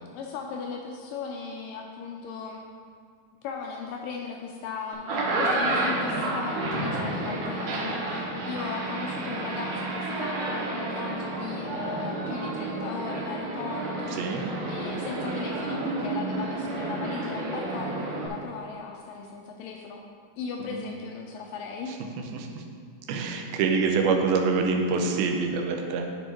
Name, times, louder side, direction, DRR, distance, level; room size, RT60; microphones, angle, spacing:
voice 1, 0.1-2.6 3.4-20.0 20.4-22.0, left 5 dB, 85° left, 1 dB, 2.0 m, -37 dB
sound 1, 4.9-18.3, right 2 dB, 65° right, 2.0 m, -30 dB
voice 2, 14.1-14.4 20.7-20.8 22.2-22.6 23.1-26.1, right 4 dB, 80° right, 3 dB, 2.5 m, -26 dB
9.8 x 4.5 x 4.5 m, 2.1 s
omnidirectional pair, 4.4 m